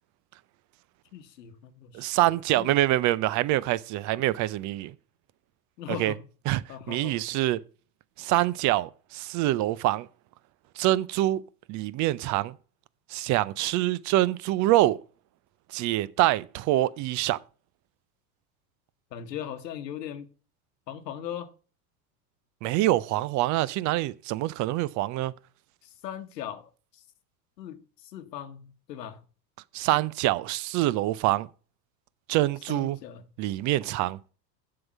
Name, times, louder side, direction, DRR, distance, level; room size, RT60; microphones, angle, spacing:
voice 1, 1.1-2.2 2.5-2.8 5.8-6.2 6.7-7.2 19.1-20.3 20.9-21.5 25.8-27.0 27.6-29.2 32.7-33.3, left 9 dB, 80° left, 1.2 m, -39 dB
voice 2, 1.9-4.9 5.9-6.1 6.5-6.6 6.9-7.6 8.2-10.1 10.8-11.4 11.7-12.5 13.1-15.0 15.7-17.4 22.6-25.3 29.7-31.5 32.3-33.0 33.4-34.2, right 16 dB, 40° right, 0.5 m, -25 dB
7.7 x 5.7 x 7.1 m
hypercardioid pair, 90°, 49 cm